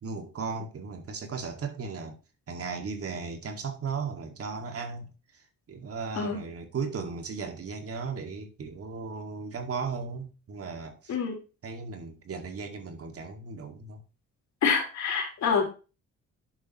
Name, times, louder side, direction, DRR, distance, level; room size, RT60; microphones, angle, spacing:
voice 1, 0.0-2.2 2.5-11.2 11.6-14.0, right 5 dB, 50° right, 2.1 m, -36 dB
voice 2, 14.6-15.8, left 6 dB, 65° left, 4.0 m, -26 dB
10.5 x 7.7 x 3.0 m
cardioid pair, 90°, 30 cm